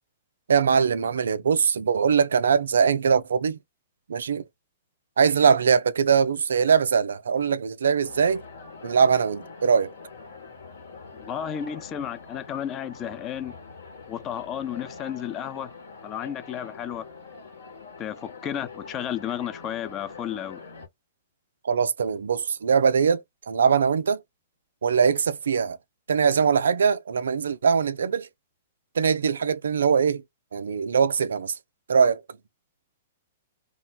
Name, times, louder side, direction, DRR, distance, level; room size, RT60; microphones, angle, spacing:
voice 1, 0.5-3.6 4.1-4.4 5.2-8.4 8.8-9.9 21.6-24.2 24.8-25.8 26.1-28.3 29.0-30.2 30.5-31.5 31.9-32.2, right 6 dB, 75° right, 0.3 m, -22 dB
sound 1, 8.0-20.9, left 4 dB, 75° left, 1.0 m, -44 dB
voice 2, 11.1-13.5 14.1-15.7 16.0-17.1 18.0-20.6, left 9 dB, 30° left, 0.4 m, -33 dB
2.3 x 2.1 x 3.9 m
figure-of-eight pair, 115°, 0 cm